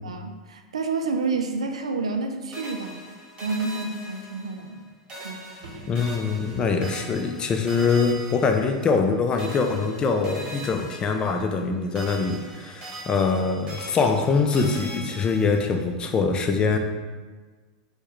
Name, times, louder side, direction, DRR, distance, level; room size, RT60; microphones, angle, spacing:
voice 1, 0.0-3.1 3.4-4.9 5.2-5.5, right 4 dB, 80° right, 5 dB, 0.3 m, -29 dB
sound 1, 2.5-4.8 5.1-9.1 9.4-11.7 11.9-15.8, right 1 dB, 30° right, 1.3 m, -41 dB
sound 2, 5.5-6.7 11.6-11.7, right 2 dB, 65° right, 0.7 m, -45 dB
voice 2, 5.9-16.8, left 4 dB, 25° left, 5 dB, 0.4 m, -23 dB
4.4 x 2.2 x 3.0 m, 1.4 s
hypercardioid pair, 95°, 3 cm